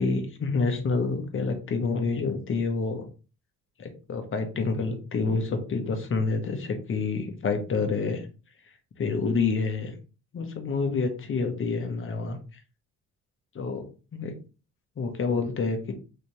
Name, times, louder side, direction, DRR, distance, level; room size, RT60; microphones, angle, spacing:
voice 1, 0.0-3.1 3.8-8.2 9.0-9.9 10.3-12.4 13.5-14.3 15.0-15.9, left 4 dB, 45° left, 5 dB, 1.0 m, -28 dB
3.2 x 2.8 x 3.1 m, 0.33 s
cardioid pair, 90°, 30 cm